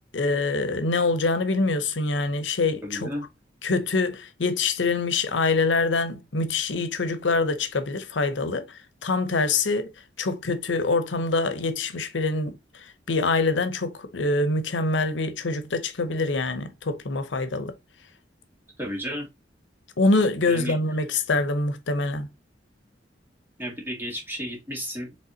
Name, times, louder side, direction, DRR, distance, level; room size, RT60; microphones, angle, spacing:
voice 1, 0.1-3.1 3.6-9.9 10.2-17.7 20.0-22.3, left 3 dB, 90° left, 0.8 m, -25 dB
voice 2, 2.8-3.3 18.8-19.3 20.4-20.8 23.6-25.2, equal, 10° right, 2.0 m, -33 dB
5.3 x 3.3 x 2.7 m
head